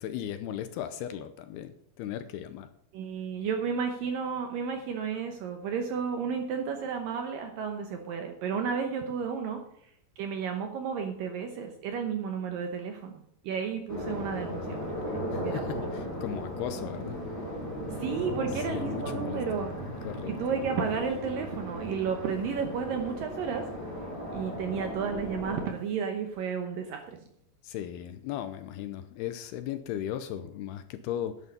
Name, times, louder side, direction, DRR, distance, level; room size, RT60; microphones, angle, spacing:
voice 1, 0.0-2.7 15.3-17.2 17.9-18.0 18.5-19.7 20.0-20.3 27.6-31.4, left 10 dB, 80° left, 10 dB, 2.5 m, -37 dB
voice 2, 2.9-9.6 10.2-13.2 13.4-14.8 15.1-15.7 18.0-19.7 20.4-23.7 24.3-27.2, right 6 dB, 70° right, 5 dB, 2.2 m, -32 dB
sound 1, 13.9-25.7, equal, 5° left, 5.8 m, -36 dB
11.0 x 9.1 x 5.3 m, 0.69 s
omnidirectional pair, 5.0 m